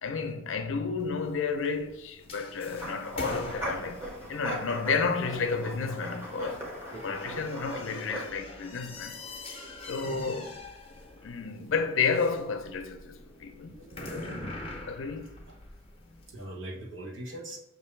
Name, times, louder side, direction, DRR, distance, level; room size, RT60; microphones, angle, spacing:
voice 1, 0.0-4.0 4.3-6.7 7.0-9.2 9.5-10.5 11.2-13.7 14.1-14.5 14.8-15.3, left 5 dB, 70° left, 0.5 m, -31 dB
sound 1, 1.0-16.4, left 2 dB, 30° left, 0.7 m, -44 dB
sound 2, 2.7-8.3, equal, 15° right, 0.8 m, -39 dB
voice 2, 10.0-10.3 13.7-14.4 14.7-14.8 15.5-15.6 16.3-17.6, right 1 dB, 75° right, 1.1 m, -42 dB
6.0 x 2.6 x 3.1 m
head